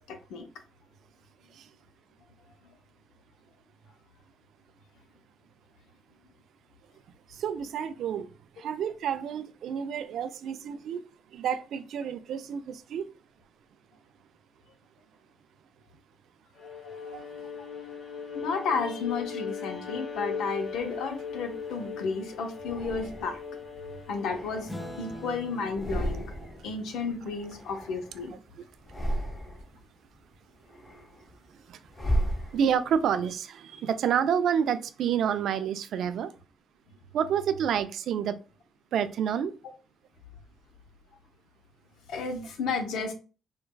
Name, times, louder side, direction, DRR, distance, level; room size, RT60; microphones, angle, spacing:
voice 1, 0.1-0.4 16.8-16.9 18.3-23.6 24.1-26.3 26.6-28.3 42.1-43.1, left 4 dB, 80° left, 0.7 m, -32 dB
voice 2, 7.3-8.3 8.6-11.0 11.3-13.1 17.0-17.3 28.5-28.6 31.7-31.8 32.5-36.3 37.1-38.4 38.9-39.5, right 8 dB, 75° right, 0.3 m, -29 dB
Bowed string instrument, 16.6-24.9, left 6 dB, 65° left, 1.4 m, -38 dB
sound 1, 20.7-21.9 22.6-23.6 24.0-25.3 25.6-26.7 27.0-28.4 28.8-29.8 30.3-33.0, equal, 30° left, 1.4 m, -35 dB
Acoustic guitar / Strum, 24.7-29.5, equal, 5° left, 0.5 m, -46 dB
4.5 x 2.2 x 2.2 m
cardioid pair, 90°, 0 cm